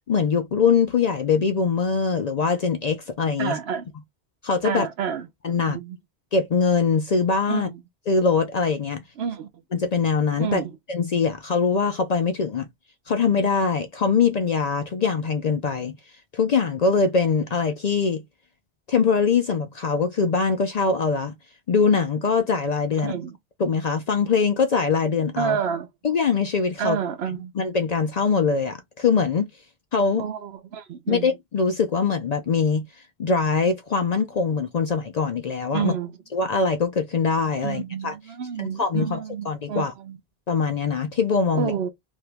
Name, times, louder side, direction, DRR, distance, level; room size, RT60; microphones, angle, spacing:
voice 1, 0.1-3.6 4.4-4.9 5.4-5.8 6.3-7.7 8.1-9.0 9.7-10.6 10.9-12.7 13.1-15.9 16.3-18.2 18.9-21.3 21.7-23.1 23.6-25.6 26.0-27.0 27.6-29.5 29.9-30.2 31.1-32.8 33.2-35.9 36.3-38.1 38.6-39.2 39.5-39.9 40.5-41.7, left 5 dB, 55° left, 0.5 m, -22 dB
voice 2, 3.4-3.9 4.6-5.3 5.7-6.0 7.5-7.8 9.2-9.5 10.4-10.7 23.0-23.4 25.4-25.9 26.8-27.5 30.1-31.4 35.7-36.2 37.6-40.2 41.5-41.9, right 8 dB, 80° right, 1.0 m, -29 dB
2.9 x 2.7 x 3.3 m
omnidirectional pair, 1.1 m